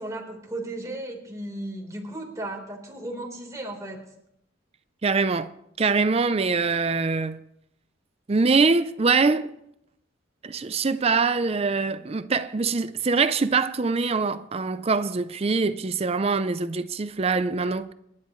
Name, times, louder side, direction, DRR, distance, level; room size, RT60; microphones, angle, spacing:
voice 1, 0.0-4.0, right 1 dB, 15° right, 3.8 m, -35 dB
voice 2, 5.0-5.5 5.8-7.4 8.3-9.5 10.4-17.9, right 4 dB, 30° right, 0.5 m, -23 dB
28.0 x 11.5 x 3.2 m
head